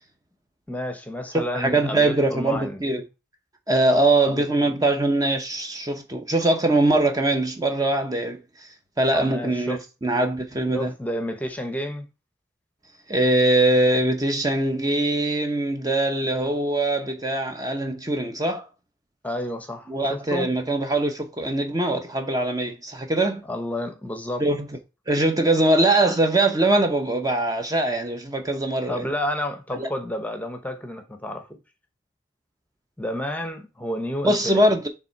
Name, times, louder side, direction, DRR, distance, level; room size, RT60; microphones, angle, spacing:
voice 1, 0.7-2.8 4.2-4.8 9.1-9.8 10.7-12.1 19.2-20.5 23.5-24.4 28.9-31.6 33.0-34.6, left 1 dB, 10° left, 0.9 m, -30 dB
voice 2, 1.3-3.0 3.7-8.4 9.0-10.9 13.1-18.7 19.9-23.4 24.4-24.7 25.1-29.1 29.8-29.9 34.2-34.9, right 2 dB, 20° right, 0.8 m, -22 dB
6.8 x 3.4 x 4.5 m
head